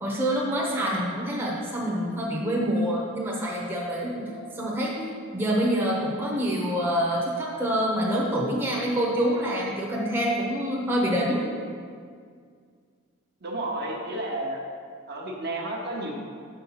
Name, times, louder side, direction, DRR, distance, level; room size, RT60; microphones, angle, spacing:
voice 1, 0.0-5.0 5.3-11.5, equal, 10° right, -4 dB, 0.9 m, -26 dB
voice 2, 13.4-14.6 15.1-16.2, right 1 dB, 50° right, -1 dB, 0.9 m, -31 dB
6.4 x 4.4 x 5.6 m, 2.1 s
head